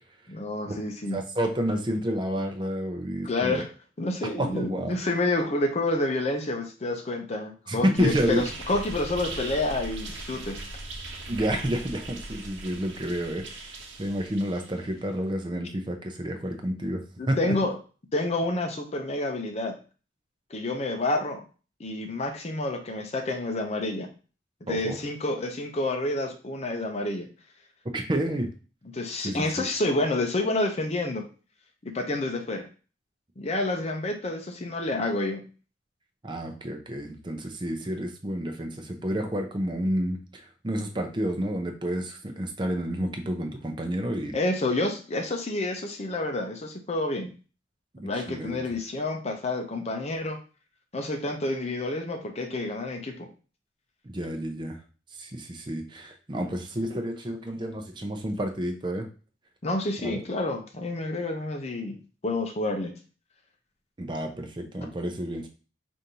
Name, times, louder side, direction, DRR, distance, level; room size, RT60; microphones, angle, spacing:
voice 1, 0.3-1.2 3.2-3.7 4.0-10.6 17.2-17.8 18.1-19.7 20.5-21.4 21.8-24.1 24.6-27.3 28.9-31.3 31.8-32.7 33.4-35.4 44.3-47.3 48.0-50.4 50.9-53.3 59.6-62.9, left 2 dB, 35° left, 4 dB, 0.6 m, -29 dB
voice 2, 1.1-3.6 4.4-5.0 7.7-8.5 11.3-13.4 14.0-17.4 24.7-25.0 27.9-28.5 29.2-29.7 36.2-44.3 47.9-48.6 54.0-54.8 55.2-59.1 60.0-60.2 64.0-65.5, right 1 dB, 25° right, 4 dB, 0.6 m, -30 dB
sound 1, 7.9-15.0, right 2 dB, 75° right, 0.9 m, -39 dB
5.0 x 2.6 x 2.8 m, 0.36 s
head